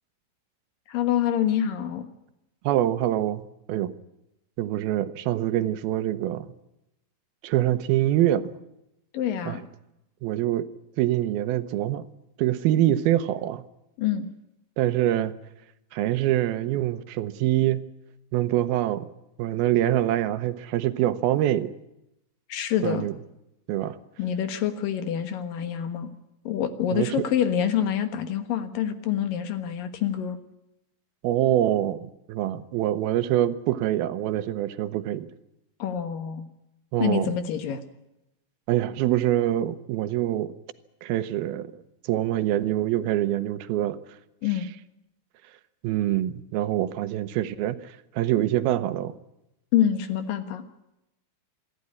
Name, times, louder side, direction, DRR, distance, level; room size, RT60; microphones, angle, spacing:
voice 1, 0.9-2.0 9.1-9.6 14.0-14.3 22.5-23.1 24.2-26.1 26.4-30.4 35.8-36.5 37.0-37.8 44.4-44.7 49.7-50.6, left 9 dB, 70° left, 9 dB, 3.0 m, -26 dB
voice 2, 2.6-3.9 4.6-6.5 7.4-8.5 9.5-9.6 10.2-10.7 11.0-12.0 12.4-13.6 14.8-15.3 15.9-17.8 18.3-19.1 19.4-21.7 22.8-23.1 23.7-24.0 26.9-27.1 31.2-35.3 36.9-37.3 38.7-40.5 41.0-44.0 45.8-49.2, right 13 dB, 85° right, 12 dB, 2.8 m, -25 dB
26.5 x 12.0 x 9.7 m, 0.89 s
omnidirectional pair, 4.3 m